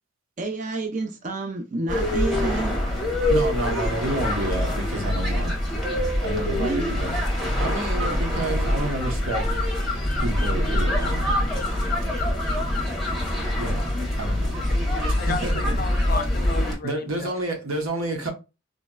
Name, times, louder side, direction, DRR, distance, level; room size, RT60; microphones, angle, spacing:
voice 1, 0.4-2.8 6.6-7.0 15.6-15.8, right 2 dB, 35° right, 0.4 m, -29 dB
sound 1, 1.9-16.7, left 1 dB, ahead, 0.7 m, -24 dB
voice 2, 3.3-5.6 6.2-7.2 7.6-9.5 10.2-11.4 13.6-14.6 15.1-15.6 16.8-18.3, right 1 dB, 80° right, 0.9 m, -30 dB
voice 3, 15.2-17.3, left 4 dB, 40° left, 0.4 m, -33 dB
3.9 x 2.1 x 2.2 m
head